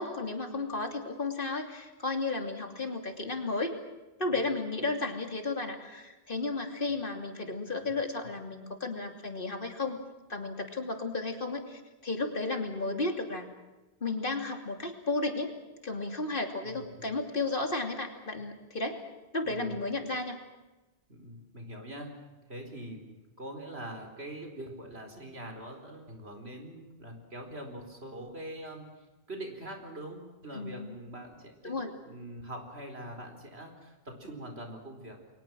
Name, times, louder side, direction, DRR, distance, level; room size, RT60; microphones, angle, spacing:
voice 1, 0.0-3.7 4.2-10.0 10.3-13.5 14.0-15.5 15.8-19.0 19.3-20.4 30.5-30.9 31.6-31.9, left 3 dB, 55° left, 4 dB, 3.1 m, -33 dB
voice 2, 16.6-17.1 19.4-19.8 21.1-22.2 22.5-28.9 29.3-35.2, right 1 dB, 85° right, 4 dB, 4.7 m, -43 dB
30.0 x 22.5 x 6.3 m, 1.1 s
omnidirectional pair, 1.1 m